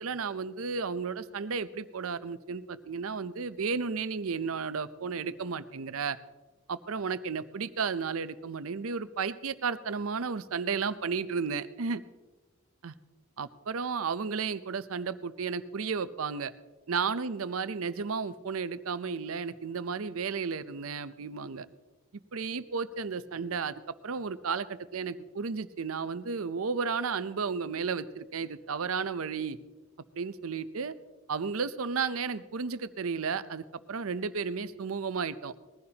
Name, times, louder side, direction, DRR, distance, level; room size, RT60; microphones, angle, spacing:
voice 1, 0.0-6.2 6.7-12.0 12.8-12.9 13.4-16.5 16.9-21.7 22.3-23.7 24.0-29.6 30.1-30.9 31.3-35.5, right 5 dB, 80° right, 14 dB, 0.6 m, -33 dB
20.5 x 15.0 x 2.9 m, 1.2 s
head